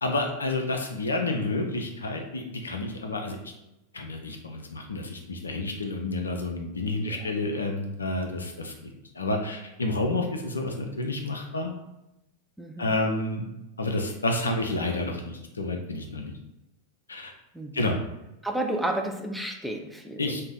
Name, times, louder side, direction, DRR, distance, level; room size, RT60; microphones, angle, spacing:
voice 1, 0.0-3.4 3.9-8.7 9.2-11.7 12.8-13.5 13.8-16.3 17.1-17.3 17.7-18.0 20.2-20.4, left 2 dB, 75° left, 3 dB, 0.4 m, -29 dB
voice 2, 12.6-13.0 17.5-17.9 18.4-20.2, right 1 dB, ahead, 2 dB, 0.3 m, -32 dB
2.6 x 2.1 x 3.6 m, 0.92 s
figure-of-eight pair, 90°, 0 cm